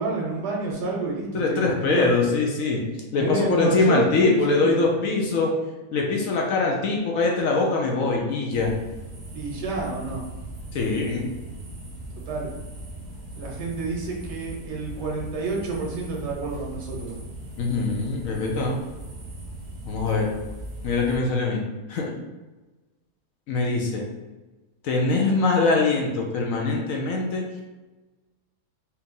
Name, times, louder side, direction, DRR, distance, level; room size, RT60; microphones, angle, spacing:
voice 1, 0.0-2.1 3.1-4.9 9.3-10.2 12.2-12.5 13.4-17.2, right 3 dB, 85° right, -2 dB, 1.6 m, -29 dB
voice 2, 1.3-2.8 3.1-5.5 5.9-8.7 10.7-11.3 17.6-18.8 19.9-20.3 20.8-21.6 21.9-22.1 23.5-24.0 24.8-27.4, left 3 dB, 65° left, 0 dB, 1.0 m, -23 dB
sound 1, 8.5-21.2, right 1 dB, 50° right, 0.9 m, -39 dB
4.5 x 2.6 x 3.7 m, 1.2 s
omnidirectional pair, 1.7 m